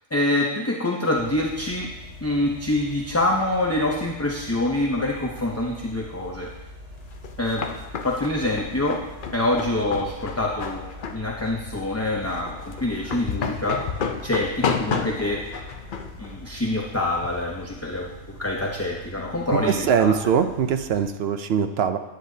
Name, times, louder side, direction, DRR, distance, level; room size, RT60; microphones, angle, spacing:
voice 1, 0.1-1.9 2.2-6.5 7.4-7.6 8.0-9.0 9.3-13.8 14.2-15.4 16.2-20.3, left 1 dB, 15° left, -2 dB, 0.6 m, -25 dB
sound 1, 1.1-21.1, left 1 dB, 80° right, 1.8 m, -43 dB
sound 2, 7.0-17.4, left 6 dB, 50° left, 0.7 m, -32 dB
voice 2, 19.7-22.0, right 7 dB, 65° right, 8 dB, 0.8 m, -22 dB
10.5 x 9.5 x 2.8 m, 1.1 s
omnidirectional pair, 1.2 m